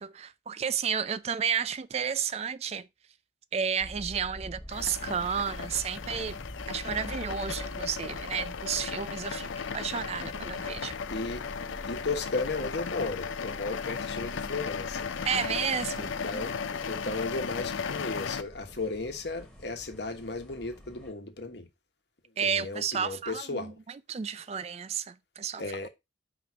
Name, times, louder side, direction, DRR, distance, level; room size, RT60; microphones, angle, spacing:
voice 1, 0.0-2.9 3.5-6.3 6.7-10.9 15.2-16.1 22.4-23.7 24.1-25.6, right 7 dB, 35° right, 0.3 m, -32 dB
sound 1, 3.8-21.1, equal, 5° left, 1.5 m, -46 dB
sound 2, 4.7-18.4, left 6 dB, 90° left, 0.6 m, -36 dB
voice 2, 11.1-11.4 11.9-15.1 16.0-16.6 16.9-21.7 22.4-23.7 25.6-25.9, left 3 dB, 60° left, 1.2 m, -35 dB
5.0 x 4.3 x 6.1 m
head